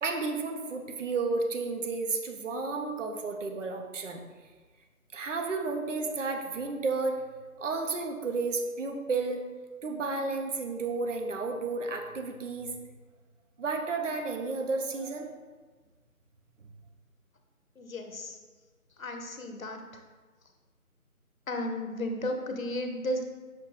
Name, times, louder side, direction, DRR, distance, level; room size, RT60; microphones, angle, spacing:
voice 1, 0.0-4.2 5.1-7.2 7.6-9.4 9.8-12.8 13.6-15.3, right 3 dB, 60° right, 4 dB, 0.5 m, -32 dB
voice 2, 17.8-18.4 19.0-19.8 21.5-23.2, left 1 dB, 65° left, 4 dB, 0.7 m, -34 dB
5.8 x 2.5 x 3.1 m, 1.4 s
figure-of-eight pair, 175°, 44 cm